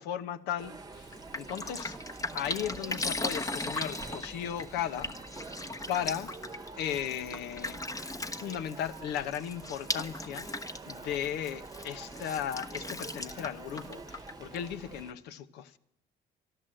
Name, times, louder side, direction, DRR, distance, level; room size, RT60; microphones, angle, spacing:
voice 1, 0.0-2.0 2.3-5.1 5.9-6.3 6.8-7.8 8.3-10.6 10.9-15.8, left 9 dB, 85° left, 0.9 m, -36 dB
sound 1, 0.6-15.1, right 4 dB, 20° right, 1.1 m, -47 dB
Drip, 0.9-15.0, left 2 dB, 20° left, 1.0 m, -39 dB
sound 2, 3.0-6.1, left 4 dB, 50° left, 1.1 m, -45 dB
13.0 x 12.5 x 7.6 m
cardioid pair, 110°, 17 cm